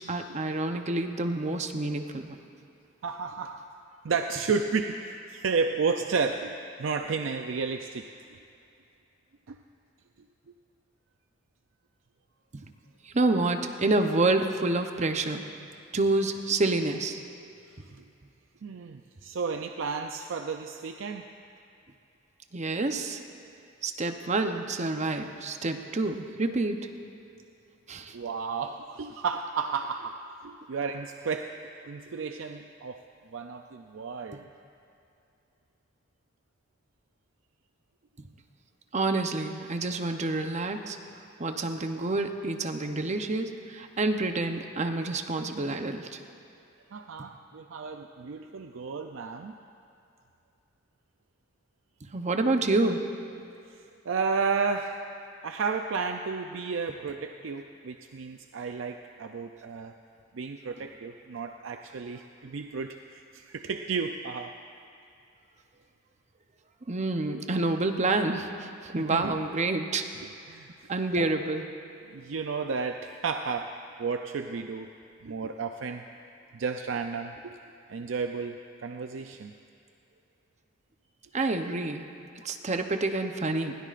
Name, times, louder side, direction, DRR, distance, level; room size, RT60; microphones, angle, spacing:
voice 1, 0.0-2.4 12.5-12.7 13.1-15.4 15.9-17.2 22.5-23.2 23.8-26.8 27.9-28.2 38.2-38.3 38.9-41.0 41.4-46.2 52.0-53.0 66.9-70.1 70.9-71.6 81.3-82.1 82.4-83.7, right 2 dB, 35° right, 6 dB, 0.8 m, -28 dB
voice 2, 3.0-3.7 4.0-8.1 9.5-9.6 18.0-18.1 18.6-21.3 28.1-33.0 33.3-34.5 46.9-49.6 53.7-55.0 55.4-60.0 60.3-64.6 69.0-69.3 70.2-70.9 71.2-71.3 72.1-74.9 75.2-76.0 76.5-77.6 77.9-79.5, right 5 dB, 75° right, 5 dB, 0.5 m, -32 dB
20.5 x 17.0 x 2.5 m, 2.6 s
head